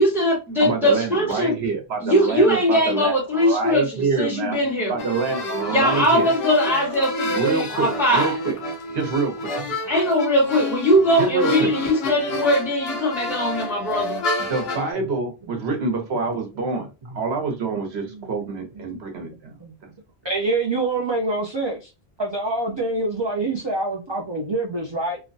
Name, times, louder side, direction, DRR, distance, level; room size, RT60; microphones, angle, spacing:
voice 1, 0.0-1.5 2.0-5.0 5.7-8.4 9.8-14.2, equal, ahead, 1.0 m, -20 dB
voice 2, 0.6-4.6 4.9-6.3 7.3-8.5 8.9-9.5 11.2-11.7 14.5-19.5 19.8-19.9, right 4 dB, 75° right, 1.1 m, -26 dB
sound 1, 5.0-14.9, left 1 dB, 70° left, 1.0 m, -29 dB
voice 3, 18.1-18.5 18.9-19.1 19.6-19.7 20.2-21.9 22.2-25.2, right 2 dB, 40° right, 0.4 m, -26 dB
3.0 x 2.1 x 2.6 m
omnidirectional pair, 1.1 m